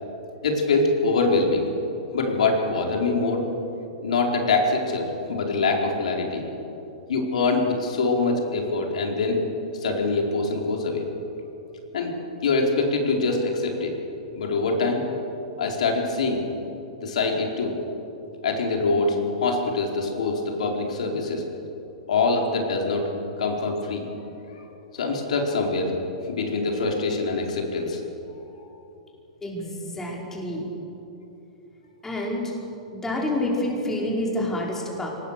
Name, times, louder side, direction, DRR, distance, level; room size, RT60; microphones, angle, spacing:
voice 1, 0.4-1.7 2.1-3.5 4.0-6.4 7.1-9.4 9.8-11.0 11.9-12.1 12.4-13.9 14.4-15.0 15.6-16.4 17.0-17.7 18.4-21.4 22.1-23.1 23.4-24.0 24.9-25.9 26.2-28.0 28.3-28.7, left 3 dB, 75° left, 1 dB, 4.4 m, -24 dB
voice 2, 29.4-30.7 32.0-32.5 32.9-35.1, left 1 dB, 10° left, -2 dB, 5.1 m, -28 dB
24.0 x 19.0 x 6.8 m, 3.0 s
hypercardioid pair, 125°, 4 cm